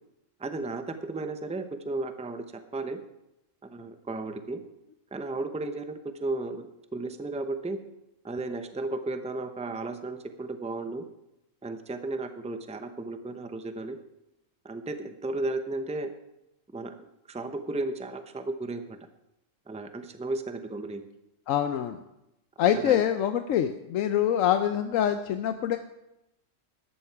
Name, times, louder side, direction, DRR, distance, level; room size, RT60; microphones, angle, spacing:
voice 1, 0.4-3.0 3.7-4.6 5.1-7.8 8.2-11.0 11.6-14.0 14.6-16.1 16.7-16.9 17.3-19.0 19.7-21.0 22.6-23.0, right 2 dB, 5° right, 8 dB, 0.7 m, -34 dB
voice 2, 21.5-22.0 22.6-25.8, left 10 dB, 85° left, 9 dB, 1.1 m, -25 dB
13.5 x 11.5 x 4.6 m, 0.88 s
omnidirectional pair, 1.3 m